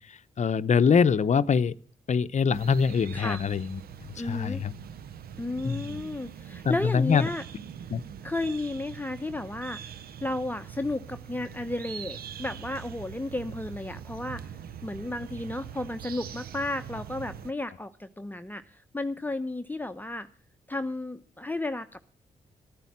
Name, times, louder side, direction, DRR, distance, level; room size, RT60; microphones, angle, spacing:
voice 1, 0.0-1.7 2.1-3.8 4.2-4.7 5.6-5.9 6.6-7.2 7.9-8.0, left 6 dB, 45° left, 0.7 m, -24 dB
sound 1, 2.5-17.5, right 9 dB, 70° right, 0.7 m, -43 dB
voice 2, 4.2-4.6 5.4-7.4 8.2-9.9 10.2-20.3 20.7-22.0, left 2 dB, 10° left, 0.8 m, -33 dB
13.0 x 9.2 x 7.4 m
hypercardioid pair, 40°, 16 cm